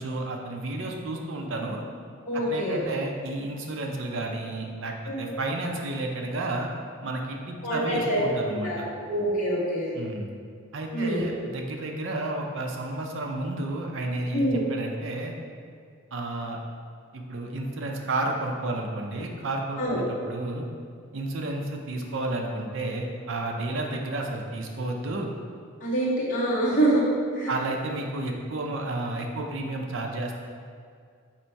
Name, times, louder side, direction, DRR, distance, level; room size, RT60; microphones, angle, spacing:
voice 1, 0.0-1.8 2.3-6.7 7.0-8.8 9.9-10.3 10.7-15.3 16.1-16.6 17.1-20.6 21.1-25.3 27.5-30.4, right 2 dB, 60° right, 1 dB, 0.5 m, -31 dB
voice 2, 2.3-2.8 5.0-5.2 7.6-8.2 8.6-8.8 9.1-9.9 10.9-11.3 14.3-14.6 19.8-20.0 25.8-27.1 27.3-27.5, right 1 dB, 40° left, -8 dB, 1.1 m, -25 dB
4.2 x 2.6 x 4.5 m, 2.2 s
head